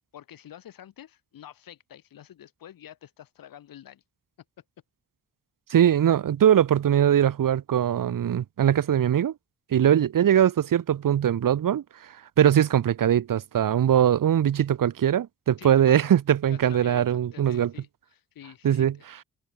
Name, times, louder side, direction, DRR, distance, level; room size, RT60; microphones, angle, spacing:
voice 1, 0.1-4.0 9.7-9.9 15.6-16.2 16.5-19.1, left 11 dB, 85° left, 5.9 m, -47 dB
voice 2, 5.7-9.3 9.7-11.8 12.4-17.7 18.6-18.9, right 10 dB, 70° right, 1.7 m, -21 dB
open air
cardioid pair, 65°, 33 cm